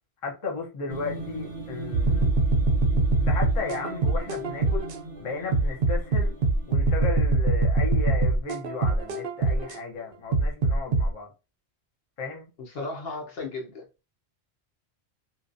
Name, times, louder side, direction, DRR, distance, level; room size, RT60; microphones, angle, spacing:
voice 1, 0.2-2.3 3.2-4.9 5.2-6.4 6.7-11.3 12.2-12.5, left 4 dB, 35° left, 0.7 m, -34 dB
sound 1, 0.9-8.6, right 2 dB, 15° right, 0.9 m, -40 dB
sound 2, 1.9-5.0 5.5-9.8 10.3-11.1, right 3 dB, 65° right, 0.7 m, -23 dB
voice 2, 12.6-13.9, left 3 dB, 70° left, 0.9 m, -35 dB
2.7 x 2.2 x 2.5 m
omnidirectional pair, 1.1 m